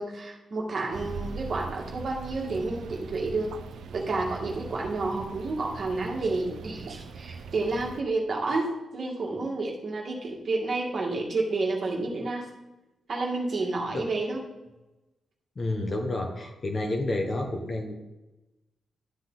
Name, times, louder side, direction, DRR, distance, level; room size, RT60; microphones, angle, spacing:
voice 1, 0.0-3.5 3.9-12.5 13.1-14.4, right 3 dB, 40° right, -1 dB, 2.0 m, -30 dB
sound 1, 0.9-8.0, right 5 dB, 75° right, 0.6 m, -40 dB
voice 2, 15.6-17.9, left 2 dB, 25° left, 4 dB, 1.1 m, -30 dB
12.0 x 9.7 x 4.0 m, 1.0 s
wide cardioid pair, 180°, 0 cm